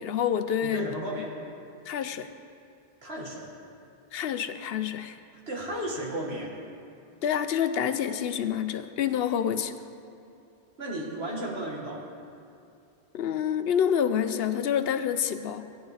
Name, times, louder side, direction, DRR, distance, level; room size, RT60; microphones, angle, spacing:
voice 1, 0.0-0.9 1.9-2.3 4.1-5.2 7.2-9.7 13.1-15.7, left 8 dB, 75° left, 10 dB, 0.8 m, -27 dB
voice 2, 0.6-1.3 3.0-3.5 5.5-6.5 10.8-12.0, right 1 dB, 85° right, -2 dB, 2.1 m, -34 dB
16.5 x 9.9 x 3.2 m, 2.6 s
omnidirectional pair, 1.0 m